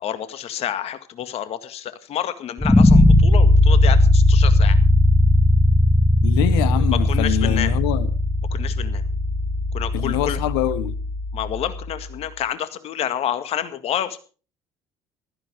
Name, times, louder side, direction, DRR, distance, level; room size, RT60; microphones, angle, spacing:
voice 1, 0.0-4.8 6.9-7.7 8.5-9.0 9.7-10.4 11.3-14.2, left 10 dB, 55° left, 1.9 m, -29 dB
sound 1, 2.6-11.6, left 1 dB, 10° left, 2.0 m, -17 dB
voice 2, 6.2-8.1 9.9-10.9, left 14 dB, 75° left, 1.0 m, -24 dB
15.5 x 13.5 x 4.9 m
hypercardioid pair, 60°, 12 cm